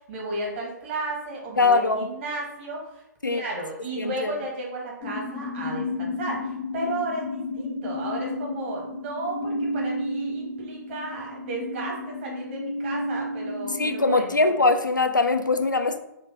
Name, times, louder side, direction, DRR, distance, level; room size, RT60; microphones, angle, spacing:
voice 1, 0.1-14.4, right 2 dB, 40° right, 1.3 m, -34 dB
voice 2, 1.6-2.1 3.2-3.4 4.0-4.4 13.8-16.0, left 3 dB, 85° left, 0.4 m, -22 dB
sound 1, 5.0-14.2, left 1 dB, 15° left, 0.5 m, -32 dB
3.4 x 2.9 x 3.6 m
figure-of-eight pair, 120°, 10 cm